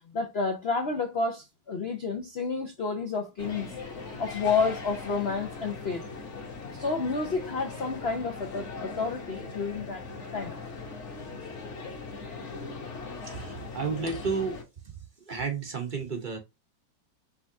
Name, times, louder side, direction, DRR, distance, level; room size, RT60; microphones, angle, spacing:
voice 1, 0.1-3.7 4.2-6.0 6.7-10.0 10.3-10.5 12.2-12.5, left 4 dB, 65° left, 0.6 m, -30 dB
sound 1, 3.4-14.6, left 4 dB, 40° left, 1.3 m, -40 dB
voice 2, 13.2-14.6 15.3-16.4, right 5 dB, 40° right, 0.7 m, -31 dB
5.5 x 3.4 x 2.6 m
omnidirectional pair, 2.2 m